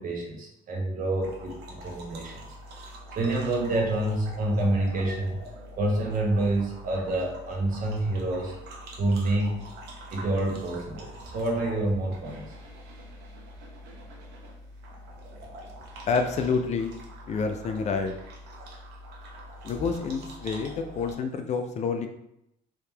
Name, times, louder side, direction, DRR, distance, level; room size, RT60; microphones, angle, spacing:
voice 1, 0.0-2.5 2.7-2.9 3.1-5.4 5.8-8.5 9.0-9.7 10.1-12.5 18.6-18.7, right 2 dB, 55° right, 0 dB, 1.0 m, -28 dB
sound 1, 1.2-21.1, equal, 80° right, 0.9 m, -44 dB
voice 2, 16.1-16.9 17.3-18.1 19.6-22.1, left 5 dB, 40° left, 6 dB, 0.4 m, -28 dB
3.6 x 2.8 x 3.3 m, 0.81 s
cardioid pair, 110°, 17 cm